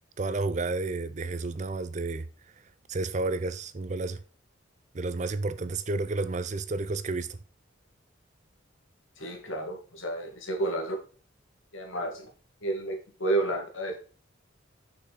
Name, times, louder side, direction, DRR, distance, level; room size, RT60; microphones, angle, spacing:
voice 1, 0.2-2.2 2.9-4.2 4.9-7.4, right 3 dB, 35° right, 0.5 m, -31 dB
voice 2, 9.2-11.0 11.7-12.3 12.6-14.0, right 2 dB, 80° left, 2.1 m, -31 dB
6.6 x 6.0 x 4.1 m
head